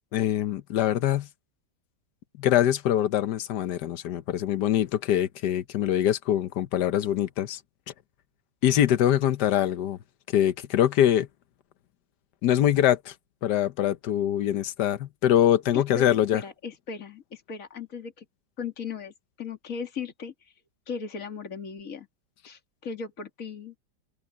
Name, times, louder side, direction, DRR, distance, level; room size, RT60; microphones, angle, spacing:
voice 1, 0.1-1.3 2.4-7.6 8.6-10.0 10.3-11.3 12.4-13.1 13.4-16.4, left 11 dB, 75° left, 1.5 m, -23 dB
voice 2, 15.7-18.3 18.6-20.3 20.9-22.1 22.5-23.7, left 6 dB, 50° left, 2.7 m, -37 dB
omnidirectional pair, 1.8 m